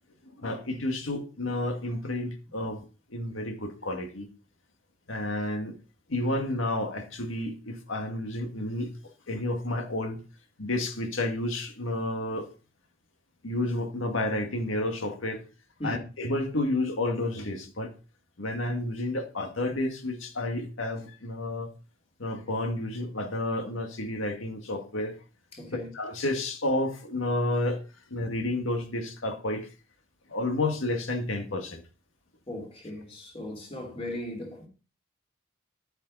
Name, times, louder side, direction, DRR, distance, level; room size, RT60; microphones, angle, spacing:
voice 1, 0.3-2.9 3.1-4.3 5.1-5.8 6.1-8.9 9.3-10.2 10.6-12.5 13.4-15.4 15.8-17.9 18.4-21.7 22.2-25.1 25.7-27.8 28.1-29.7 30.3-31.8, left 1 dB, 80° left, 1.9 m, -30 dB
voice 2, 25.5-25.9 32.5-34.7, left 1 dB, 30° left, 2.9 m, -37 dB
10.5 x 9.0 x 4.0 m
head